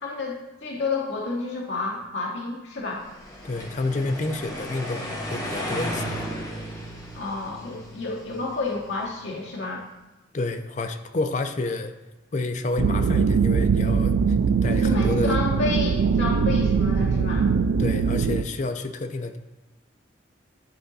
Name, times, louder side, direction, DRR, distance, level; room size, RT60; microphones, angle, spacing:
voice 1, 0.0-3.0 7.1-9.9 14.7-17.5, left 3 dB, 65° left, -3 dB, 0.9 m, -30 dB
sound 1, 3.0-9.2, equal, 15° left, 1.3 m, -35 dB
voice 2, 3.4-6.3 10.3-12.0 12.3-14.2 14.6-15.4 17.8-19.4, left 2 dB, 40° left, 8 dB, 0.5 m, -29 dB
sound 2, 12.8-18.4, right 5 dB, 80° right, 0.3 m, -21 dB
11.0 x 3.8 x 4.1 m, 1.0 s
head